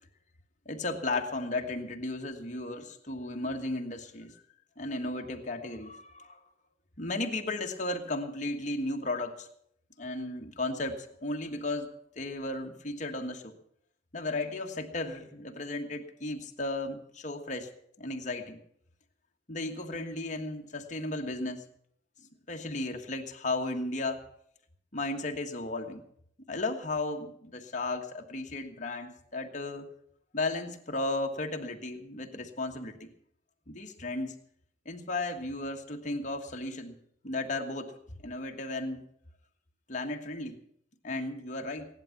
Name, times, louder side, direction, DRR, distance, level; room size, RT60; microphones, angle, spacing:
voice 1, 0.6-4.4 4.8-6.4 7.0-9.5 10.0-11.9 12.1-13.5 14.1-17.7 18.0-18.6 19.5-21.6 22.5-24.2 24.9-26.1 26.5-29.8 30.3-33.1 33.7-34.4 34.8-37.0 37.2-37.9 38.2-39.0 39.9-40.6 41.0-41.9, left 2 dB, 40° left, 3 dB, 1.5 m, -34 dB
16.0 x 11.0 x 5.9 m, 0.69 s
head